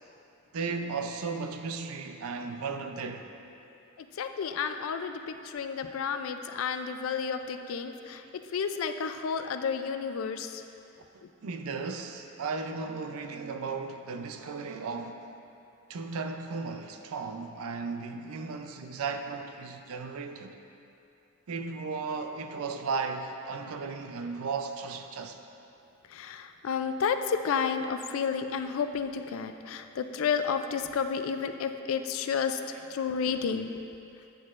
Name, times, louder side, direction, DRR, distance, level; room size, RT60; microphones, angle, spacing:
voice 1, 0.5-3.3 11.4-15.4 15.9-20.6 21.5-25.4 32.7-32.8, right 4 dB, 85° right, 0.4 m, -35 dB
voice 2, 4.0-10.6 11.2-11.3 26.1-32.6 32.9-33.7, left 6 dB, 75° left, 0.3 m, -31 dB
9.2 x 6.2 x 2.4 m
head